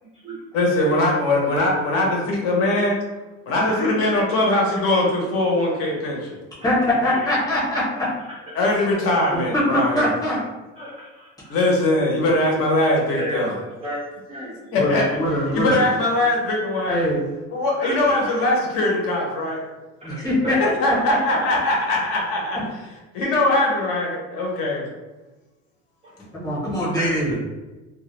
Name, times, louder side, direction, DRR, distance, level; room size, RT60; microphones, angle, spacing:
voice 1, 0.0-0.4 3.7-4.0 10.8-11.5 12.9-13.4 13.8-14.0 14.3-14.8 17.8-18.0 18.3-18.4 20.0-20.1 27.0-27.2, equal, 20° right, -6 dB, 0.4 m, -33 dB
voice 2, 0.5-2.9 3.5-6.3 8.5-10.1 11.5-13.5 14.7-17.1 17.5-19.6 20.5-22.6 23.1-24.8, left 2 dB, 55° left, -1 dB, 0.6 m, -21 dB
voice 3, 6.6-8.1 9.3-10.4 14.8-15.8 16.9-17.2 20.0-20.6 21.1-21.2 26.3-27.4, left 1 dB, 15° left, -7 dB, 0.7 m, -22 dB
2.1 x 2.0 x 2.9 m, 1.1 s
cardioid pair, 175°, 29 cm